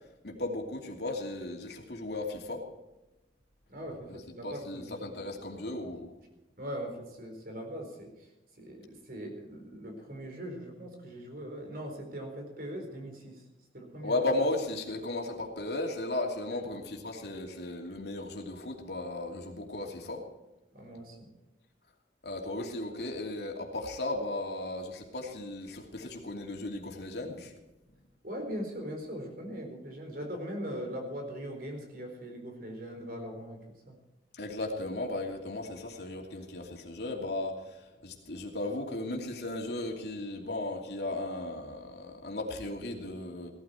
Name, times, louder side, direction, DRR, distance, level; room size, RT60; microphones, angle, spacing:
voice 1, 0.2-2.6 4.1-4.2 4.4-6.1 14.0-20.2 22.2-27.5 34.3-43.5, left 2 dB, 70° left, 1 dB, 2.8 m, -35 dB
voice 2, 3.7-4.9 6.6-8.1 8.6-13.4 13.7-14.2 16.5-16.6 20.7-21.3 28.2-34.0, equal, 55° right, 3 dB, 4.3 m, -40 dB
17.5 x 13.0 x 4.5 m, 1.0 s
head